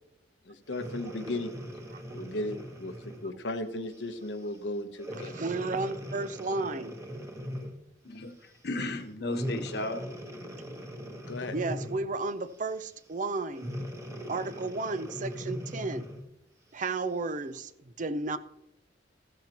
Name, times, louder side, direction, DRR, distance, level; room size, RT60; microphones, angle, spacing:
voice 1, 0.5-1.5 2.1-2.9 3.2-5.4 11.3-11.6, left 2 dB, 85° left, 7 dB, 1.0 m, -35 dB
Breathing, 0.7-3.3 3.9-4.2 5.0-7.9 9.3-12.2 13.5-16.3 16.9-17.0, equal, 15° right, 1.3 m, -40 dB
voice 2, 5.2-6.9 11.5-13.7 14.3-16.1 16.7-18.4, right 3 dB, 45° right, 11 dB, 0.6 m, -33 dB
voice 3, 8.0-10.0, left 2 dB, 60° left, 6 dB, 1.3 m, -34 dB
15.0 x 13.0 x 3.0 m, 0.83 s
head